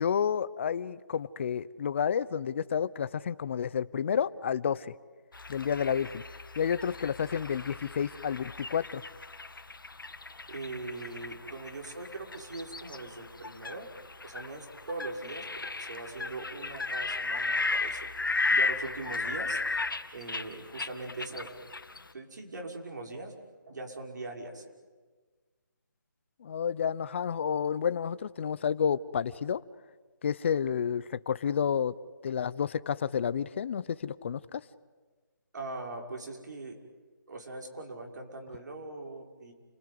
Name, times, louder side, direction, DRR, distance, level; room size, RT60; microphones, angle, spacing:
voice 1, 0.0-4.9 5.5-6.2 6.6-9.0 26.4-29.6 30.2-31.9 32.2-34.6, left 7 dB, 35° left, 17 dB, 0.8 m, -30 dB
sound 1, 5.3-22.1, left 3 dB, 90° left, 2.0 m, -35 dB
voice 2, 10.5-13.9 14.2-18.0 18.5-19.6 20.1-21.5 21.9-23.3 23.7-24.6 35.5-36.8 37.3-39.5, right 2 dB, 60° right, 1 dB, 5.9 m, -41 dB
29.0 x 20.5 x 9.6 m, 1.4 s
figure-of-eight pair, 160°, 11 cm